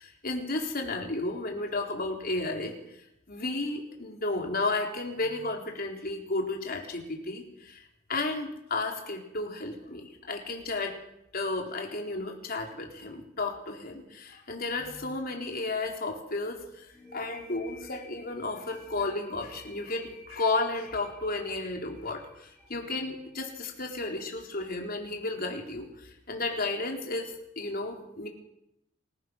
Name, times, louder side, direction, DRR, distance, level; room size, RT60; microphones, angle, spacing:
voice 1, 0.0-2.7 3.3-7.8 8.1-11.0 11.3-28.3, left 2 dB, 50° left, 2 dB, 4.0 m, -33 dB
sound 1, 16.9-24.3, left 1 dB, ahead, 6.2 m, -52 dB
27.5 x 16.0 x 6.5 m, 0.83 s
head